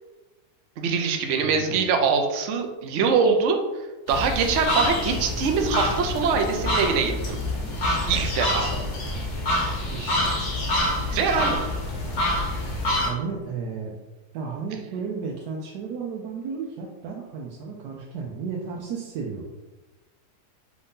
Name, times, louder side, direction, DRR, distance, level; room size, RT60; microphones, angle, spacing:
voice 1, 0.8-7.4 8.1-8.7 11.1-11.6, right 5 dB, 65° right, 4 dB, 0.8 m, -23 dB
voice 2, 1.4-1.8 9.9-10.4 10.9-11.6 13.0-13.9 14.3-19.5, right 5 dB, 90° right, -2 dB, 1.2 m, -34 dB
sound 1, 4.1-13.1, left 1 dB, 50° left, 1.1 m, -26 dB
4.7 x 2.6 x 3.6 m, 1.1 s
omnidirectional pair, 1.7 m